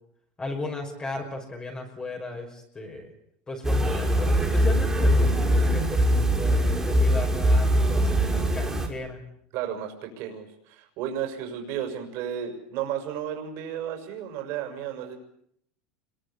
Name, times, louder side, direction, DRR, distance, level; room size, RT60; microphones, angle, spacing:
voice 1, 0.4-3.1 3.5-9.2, left 2 dB, 15° left, 1 dB, 5.8 m, -36 dB
sound 1, 3.6-8.9, equal, 10° right, 5.6 m, -22 dB
voice 2, 9.5-15.2, right 9 dB, 55° right, 4 dB, 6.5 m, -33 dB
27.5 x 22.5 x 8.5 m, 0.69 s
supercardioid pair, 135°, 5 cm